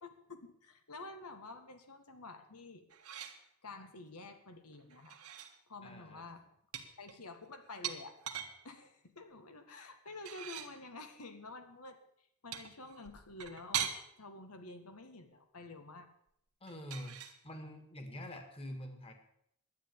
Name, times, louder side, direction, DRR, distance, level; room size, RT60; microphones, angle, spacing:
voice 1, 0.0-2.9 3.6-5.2 5.7-6.4 7.0-8.1 8.6-12.0 12.4-16.1, left 3 dB, 90° left, 7 dB, 1.8 m, -50 dB
sound 1, 2.9-3.4 4.9-5.5 6.7-8.6 10.1-10.8 12.5-14.0 16.7-17.4, right 9 dB, 80° right, 1.6 m, -41 dB
voice 2, 5.8-6.3 16.6-19.1, left 1 dB, 25° left, 6 dB, 2.0 m, -46 dB
11.5 x 9.6 x 8.7 m, 0.72 s
head